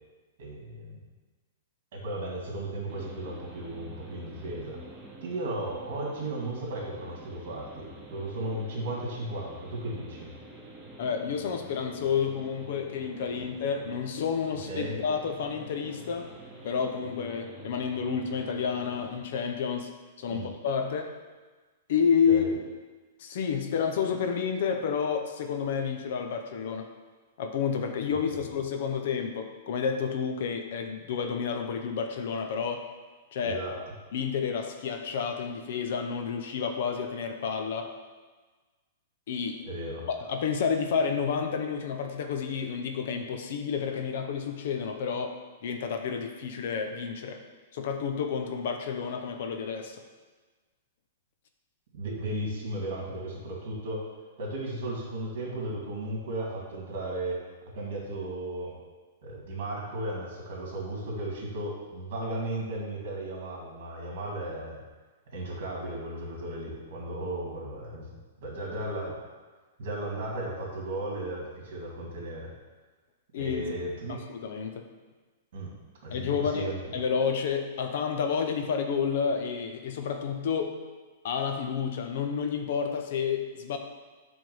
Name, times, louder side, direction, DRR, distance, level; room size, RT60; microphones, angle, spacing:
voice 1, 0.4-1.0 1.9-4.8 5.2-10.3 14.7-15.0 20.3-20.5 22.2-22.5 28.3-28.4 33.4-33.7 39.6-40.0 51.9-54.0 54.4-57.4 57.7-58.7 59.2-64.8 65.3-68.1 68.4-69.2 69.8-72.5 73.4-74.2 75.5-75.7 76.0-76.8, right 1 dB, 55° right, -3 dB, 2.4 m, -35 dB
sound 1, 2.9-19.2, right 2 dB, 10° right, 0.8 m, -48 dB
voice 2, 11.0-16.3 16.6-19.9 20.2-21.1 21.9-22.4 23.2-26.9 27.4-32.8 33.3-33.6 34.1-37.9 39.3-39.6 40.1-45.4 45.6-47.4 47.7-50.0 73.3-73.7 74.1-74.8 76.1-80.8 81.2-83.8, left 6 dB, 55° left, 6 dB, 0.7 m, -30 dB
7.8 x 3.6 x 5.4 m, 1.3 s
hypercardioid pair, 165°, 0 cm